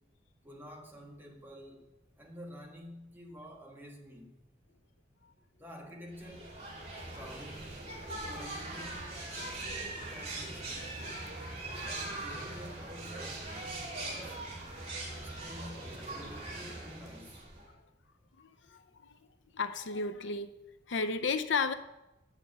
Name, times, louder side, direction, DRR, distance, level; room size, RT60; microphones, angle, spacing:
voice 1, 0.4-1.9 2.2-4.4 5.6-6.6 7.1-7.9 8.2-10.8 11.8-13.7 14.1-14.4 15.1-17.5, equal, 10° right, 1.8 m, -49 dB
sound 1, 6.1-17.7, right 2 dB, 35° right, 2.6 m, -41 dB
voice 2, 18.4-19.1 19.5-20.5 20.9-21.7, left 4 dB, 70° left, 0.6 m, -33 dB
8.8 x 6.6 x 8.0 m
head